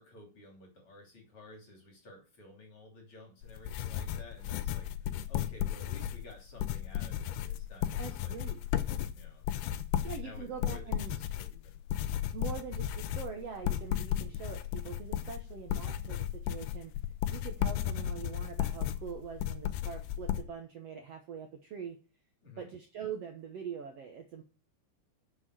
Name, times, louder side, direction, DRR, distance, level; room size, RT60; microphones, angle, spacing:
voice 1, 0.0-8.4 9.1-9.4 10.2-11.8 22.4-22.7, left 1 dB, 35° left, 1 dB, 3.5 m, -53 dB
sound 1, 3.4-20.4, left 11 dB, 85° left, 2.8 m, -34 dB
voice 2, 8.0-8.6 10.0-11.2 12.3-16.9 17.3-22.0 22.6-24.4, right 7 dB, 85° right, 4 dB, 1.3 m, -43 dB
8.1 x 7.1 x 6.4 m, 0.33 s
omnidirectional pair, 4.6 m